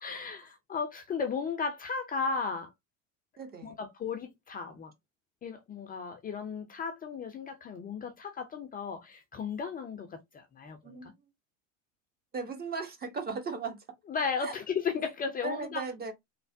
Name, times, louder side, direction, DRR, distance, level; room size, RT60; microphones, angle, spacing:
voice 1, 0.0-2.7 3.6-4.9 5.4-11.0 14.1-15.8, left 5 dB, 20° left, 0.5 m, -35 dB
voice 2, 3.4-3.8 10.8-11.1 12.3-13.8 14.4-14.5 15.4-16.1, right 4 dB, 25° right, 0.7 m, -37 dB
3.2 x 2.0 x 2.6 m
hypercardioid pair, 90°, 39 cm